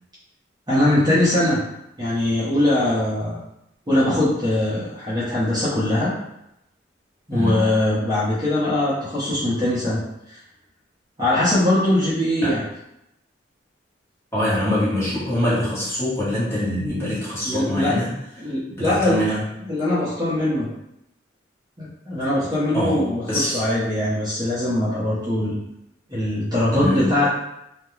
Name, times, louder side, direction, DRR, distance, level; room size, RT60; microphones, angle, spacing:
voice 1, 0.7-1.6 2.0-3.4 3.9-6.1 7.3-10.0 10.3-10.4 11.2-12.6 17.4-18.0 18.4-19.2 19.6-20.7 21.8-25.7 26.1-27.3, left 1 dB, 20° right, -10 dB, 0.6 m, -21 dB
voice 2, 7.3-7.7 12.4-12.5 14.3-18.1 18.4-18.5 18.8-19.4 22.7-23.6 26.8-27.2, left 1 dB, 15° left, -10 dB, 1.0 m, -24 dB
2.3 x 2.1 x 3.0 m, 0.83 s
head